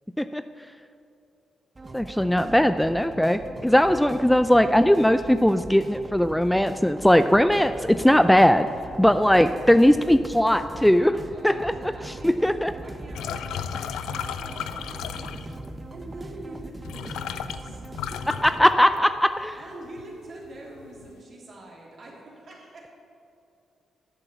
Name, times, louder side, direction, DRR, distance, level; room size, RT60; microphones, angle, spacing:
voice 1, 0.2-0.7 1.9-8.7 9.0-11.7 12.0-12.7 18.4-19.6, equal, 5° left, 10 dB, 0.4 m, -20 dB
sound 1, 1.8-18.7, right 2 dB, 30° right, 0.9 m, -41 dB
voice 2, 11.3-13.7 14.2-17.8 18.1-18.2 19.6-22.9, right 1 dB, 55° right, -3 dB, 3.3 m, -44 dB
sound 2, 13.2-15.7 16.5-16.6 16.8-19.3 19.6-20.1 20.4-21.1, left 9 dB, 75° left, 0.4 m, -34 dB
11.5 x 7.0 x 6.9 m, 2.6 s
hypercardioid pair, 40°, 0 cm